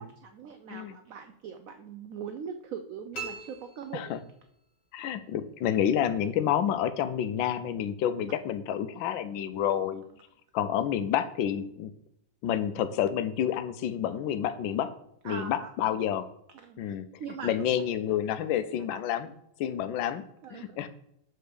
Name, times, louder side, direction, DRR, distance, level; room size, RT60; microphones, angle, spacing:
voice 1, 0.0-4.2 15.2-15.7 16.5-16.8 17.2-17.5 20.4-20.8, right 7 dB, 85° right, 7 dB, 0.7 m, -41 dB
sound 1, 3.1-4.7, right 4 dB, 65° left, 2.3 m, -42 dB
voice 2, 4.9-10.0 10.5-11.9 12.4-14.9 15.2-16.3 16.8-17.1 17.4-19.3 19.6-20.2 20.5-20.9, left 10 dB, 85° left, 12 dB, 1.3 m, -29 dB
6.4 x 4.4 x 5.0 m, 0.76 s
omnidirectional pair, 2.0 m